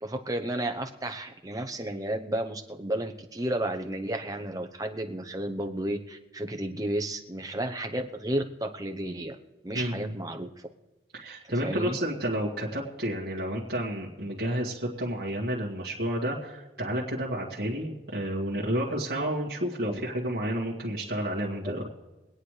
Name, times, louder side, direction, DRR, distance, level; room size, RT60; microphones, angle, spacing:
voice 1, 0.0-9.4 9.6-10.5 11.6-12.0 19.9-20.0 21.6-21.8, right 1 dB, 20° right, 5 dB, 0.8 m, -32 dB
voice 2, 9.7-10.2 11.1-22.0, equal, 55° right, -6 dB, 1.9 m, -31 dB
24.0 x 9.0 x 3.3 m, 1.1 s
head